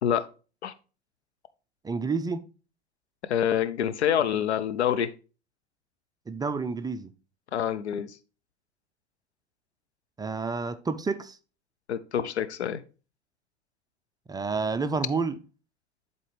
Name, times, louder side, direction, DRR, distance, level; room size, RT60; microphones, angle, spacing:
voice 1, 1.8-2.4 6.3-7.1 10.2-11.4 14.3-15.4, right 4 dB, 10° right, 0.5 m, -29 dB
voice 2, 3.3-5.1 7.5-8.2 11.9-12.8, left 9 dB, 80° left, 0.7 m, -26 dB
11.0 x 4.1 x 3.3 m
hypercardioid pair, 85°, 33 cm